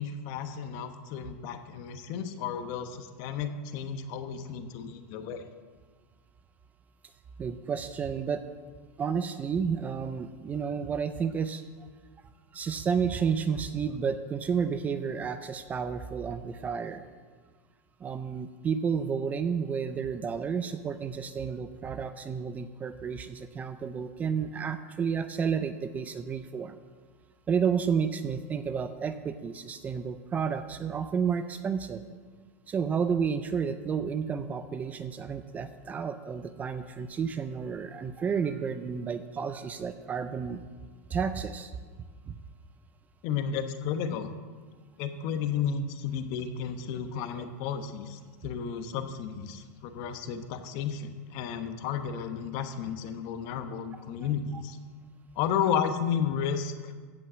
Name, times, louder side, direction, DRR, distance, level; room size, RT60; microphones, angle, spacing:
voice 1, 0.0-5.5 43.2-44.3 45.0-54.8 55.4-56.9, left 7 dB, 45° left, 9 dB, 1.1 m, -33 dB
voice 2, 7.4-8.4 9.0-11.6 12.5-17.0 18.0-26.8 27.5-32.0 32.7-40.6 41.1-41.7 42.3-42.4 47.4-47.5, right 6 dB, 20° right, 11 dB, 0.5 m, -31 dB
15.5 x 5.5 x 7.4 m, 1.5 s
supercardioid pair, 145°, 9 cm